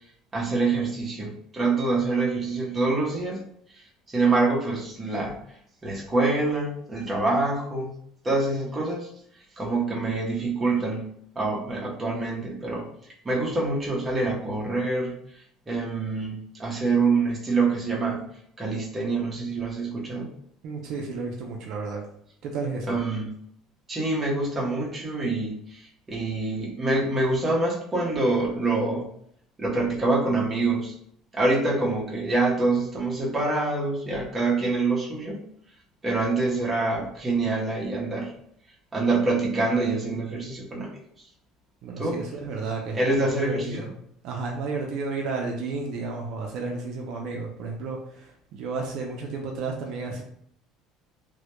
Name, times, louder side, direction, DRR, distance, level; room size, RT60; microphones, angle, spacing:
voice 1, 0.3-3.4 3.7-5.4 5.8-7.9 8.2-9.1 9.6-11.1 11.3-12.9 13.2-15.1 15.7-18.2 18.6-20.3 22.9-23.3 23.9-29.1 29.6-31.0 31.3-35.4 36.0-38.3 38.9-40.9 42.0-42.2 42.9-43.9, right 3 dB, 15° right, -3 dB, 0.6 m, -26 dB
voice 2, 20.6-22.0 22.4-22.9 41.8-43.9 44.2-50.2, right 4 dB, 60° right, 0 dB, 0.4 m, -32 dB
2.1 x 2.1 x 2.9 m, 0.68 s
cardioid pair, 150°, 0 cm